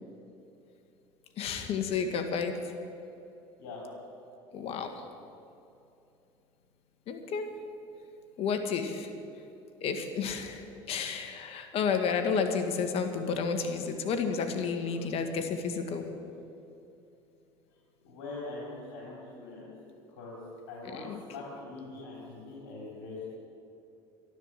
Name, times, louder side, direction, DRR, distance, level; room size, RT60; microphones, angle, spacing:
voice 1, 1.4-2.6 4.5-5.0 7.1-7.5 8.4-9.1 9.8-16.1 20.9-21.2, left 5 dB, 55° left, 6 dB, 1.7 m, -31 dB
voice 2, 18.1-20.4 20.7-23.3, left 3 dB, 85° left, -4 dB, 3.4 m, -43 dB
12.5 x 12.5 x 7.5 m, 2.8 s
supercardioid pair, 90°, 12 cm